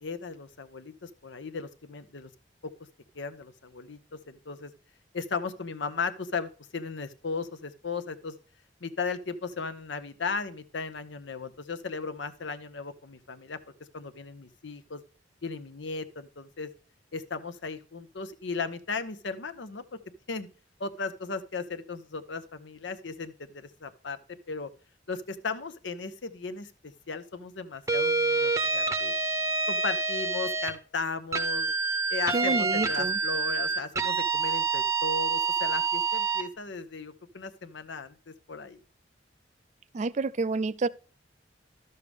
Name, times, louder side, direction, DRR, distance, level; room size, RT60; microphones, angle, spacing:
voice 1, 0.0-2.3 3.1-4.7 5.1-8.4 8.8-13.6 13.9-15.0 15.4-16.7 17.1-20.0 20.3-20.5 20.8-24.2 24.5-24.7 25.1-29.1 29.7-31.7 32.1-38.8, left 4 dB, 80° left, 0.8 m, -36 dB
sound 1, 27.9-30.7 31.3-36.5, right 4 dB, 15° right, 0.7 m, -27 dB
voice 2, 32.3-33.2 39.9-40.9, right 3 dB, 40° right, 0.4 m, -29 dB
12.5 x 6.7 x 3.4 m
head